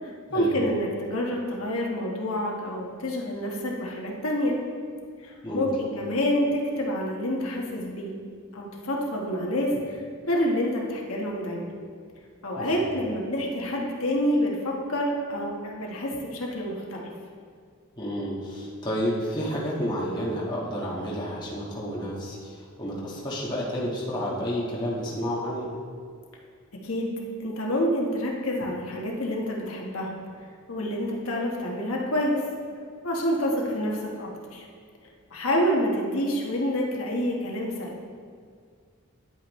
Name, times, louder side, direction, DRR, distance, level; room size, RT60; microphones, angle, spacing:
voice 1, 0.0-4.6 5.2-8.1 8.5-10.0 10.3-11.7 12.4-17.1 26.8-27.1 27.4-30.1 30.4-32.4 33.0-34.6 35.3-37.9, equal, 75° left, -2 dB, 1.2 m, -28 dB
voice 2, 12.5-12.9 18.0-25.7, equal, 20° left, -6 dB, 1.4 m, -30 dB
10.0 x 8.4 x 3.1 m, 2.1 s
head